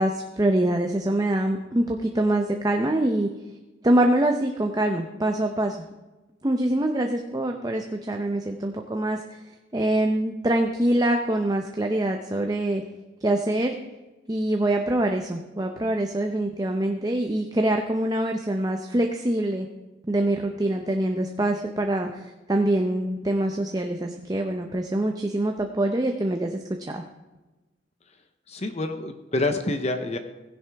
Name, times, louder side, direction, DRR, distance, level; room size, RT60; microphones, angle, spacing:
voice 1, 0.0-3.3 3.8-5.8 6.4-9.4 9.7-12.8 13.2-13.8 14.3-19.7 20.1-27.0, right 1 dB, 20° right, 4 dB, 0.6 m, -24 dB
voice 2, 28.5-30.2, left 2 dB, 35° left, 8 dB, 0.7 m, -27 dB
16.0 x 10.5 x 3.4 m, 1.1 s
head